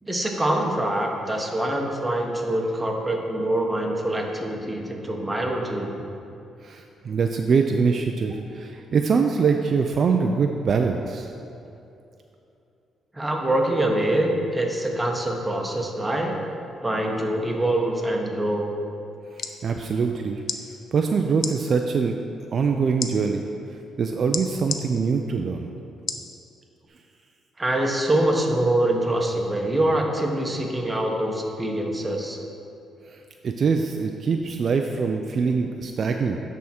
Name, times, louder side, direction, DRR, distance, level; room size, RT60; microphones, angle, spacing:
voice 1, 0.0-5.9 13.1-16.4 16.8-18.7 27.6-32.4, right 1 dB, 15° right, 1 dB, 1.0 m, -24 dB
voice 2, 6.6-11.3 19.3-20.4 20.9-22.2 22.5-23.5 24.0-25.7 33.1-36.4, right 5 dB, 50° right, 4 dB, 0.3 m, -23 dB
sound 1, 19.1-19.6 20.4-20.6 21.4-21.5 23.0-23.1 24.3-24.8 26.1-26.3 26.9-27.0, left 6 dB, 55° left, 0.5 m, -29 dB
10.5 x 3.6 x 4.3 m, 2.7 s
cardioid pair, 90°, 0 cm